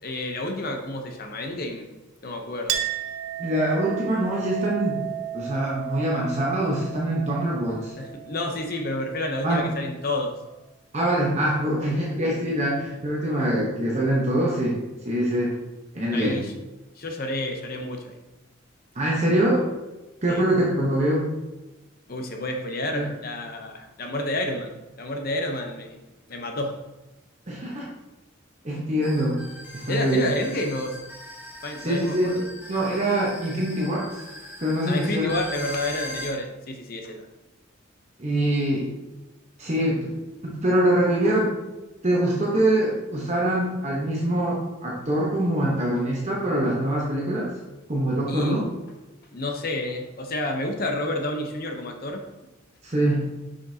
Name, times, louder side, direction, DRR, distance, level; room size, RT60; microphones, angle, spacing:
voice 1, 0.0-1.8 2.2-2.8 8.0-10.4 16.1-16.5 17.0-18.2 20.3-20.4 22.1-24.7 25.0-26.0 26.3-26.8 29.9-31.0 31.6-32.4 34.9-37.3 48.3-48.6 49.3-52.2, left 1 dB, 45° left, 4 dB, 0.7 m, -30 dB
Chink clink, 2.7-9.7, right 12 dB, 80° right, 0.5 m, -34 dB
voice 2, 3.4-5.0 5.3-7.9 9.4-9.6 10.9-14.8 15.0-15.6 15.9-16.4 18.9-19.7 20.2-21.3 22.9-23.1 27.5-27.9 28.6-29.4 29.7-30.3 31.8-32.4 32.7-34.1 34.6-35.3 38.2-38.9 39.6-40.1 40.4-41.5 42.0-47.5 47.9-48.6 52.8-53.3, right 1 dB, 35° right, -4 dB, 0.9 m, -24 dB
sound 1, 29.0-36.3, equal, 10° right, 1.0 m, -40 dB
6.5 x 5.1 x 2.8 m, 1.1 s
head